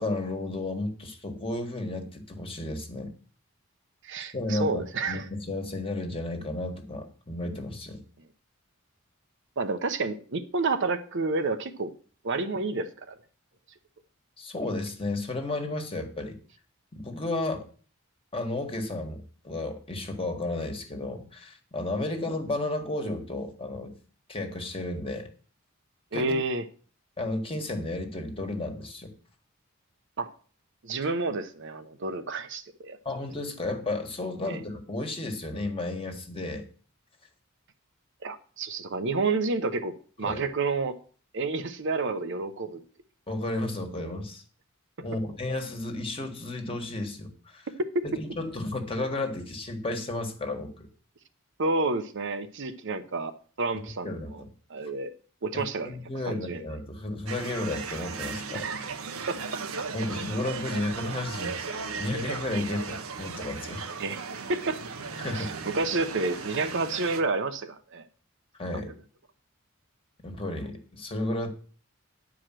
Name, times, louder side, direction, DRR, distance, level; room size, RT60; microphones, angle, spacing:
voice 1, 0.0-3.1 4.3-8.0 14.4-16.4 16.9-17.7 18.3-23.9 24.3-25.3 26.1-26.3 27.2-29.1 33.0-36.6 40.2-40.4 43.3-44.4 45.0-47.7 48.0-50.9 54.0-54.5 55.5-58.7 59.9-63.9 65.2-65.5 68.5-68.9 70.2-71.5, left 2 dB, 25° left, 5 dB, 1.7 m, -33 dB
voice 2, 4.0-5.3 9.6-11.9 12.2-13.2 26.1-26.6 30.2-30.3 30.8-33.0 34.5-34.6 38.2-41.0 41.3-42.8 45.0-45.1 51.6-54.4 54.7-55.1 55.4-56.0 56.3-56.6 58.6-58.8 59.3-59.9 64.0-64.2 64.5-64.8 65.3-68.0 68.7-68.9, right 3 dB, 60° right, 9 dB, 0.8 m, -30 dB
sound 1, 57.3-67.2, right 5 dB, 80° right, 1.0 m, -36 dB
10.5 x 4.9 x 7.5 m, 0.41 s
head